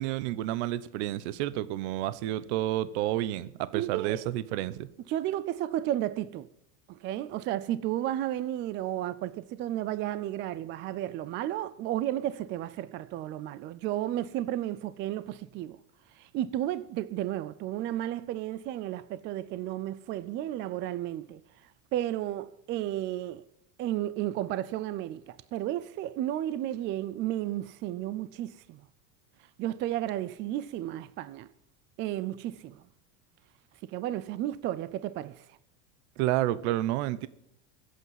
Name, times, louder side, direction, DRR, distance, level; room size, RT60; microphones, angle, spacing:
voice 1, 0.0-4.9 36.2-37.3, right 14 dB, 70° right, 0.9 m, -30 dB
voice 2, 3.7-4.3 5.1-6.5 6.9-15.8 16.1-23.4 23.8-28.9 29.4-31.5 32.0-32.9 33.8-35.6, right 13 dB, 35° right, 0.4 m, -33 dB
23.0 x 8.3 x 5.8 m
supercardioid pair, 155°, 35 cm